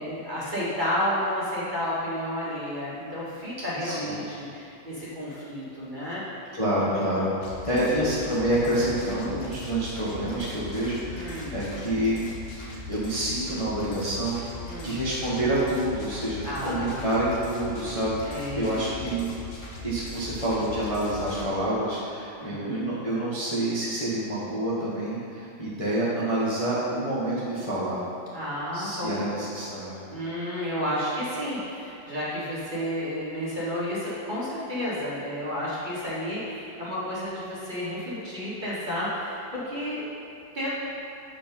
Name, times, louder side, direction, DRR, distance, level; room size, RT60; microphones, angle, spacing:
voice 1, 0.0-6.2 7.7-7.9 11.1-11.6 14.6-15.0 16.4-17.2 18.2-18.9 22.4-22.8 28.3-29.3 30.1-40.0 40.5-40.7, equal, 25° right, -8 dB, 1.6 m, -31 dB
voice 2, 3.8-4.2 6.5-7.4 7.7-12.3 12.6-14.4 14.8-19.3 19.8-28.0 28.7-30.0, right 1 dB, 20° left, -9 dB, 1.0 m, -28 dB
sound 1, 7.4-21.5, left 2 dB, 50° left, 1.2 m, -40 dB
7.5 x 5.2 x 5.2 m, 2.7 s
omnidirectional pair, 2.0 m